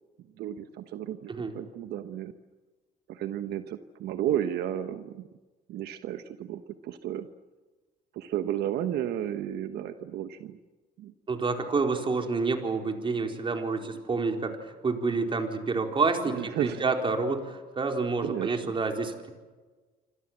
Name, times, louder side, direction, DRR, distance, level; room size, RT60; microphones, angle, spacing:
voice 1, 0.4-2.3 3.1-5.3 5.7-7.3 8.1-10.6 11.0-11.1 16.3-16.8 18.2-18.8, right 11 dB, 75° right, 9 dB, 1.2 m, -33 dB
voice 2, 11.3-19.3, right 4 dB, 30° right, 4 dB, 4.3 m, -28 dB
27.5 x 26.0 x 7.5 m, 1.3 s
cardioid pair, 110°, 17 cm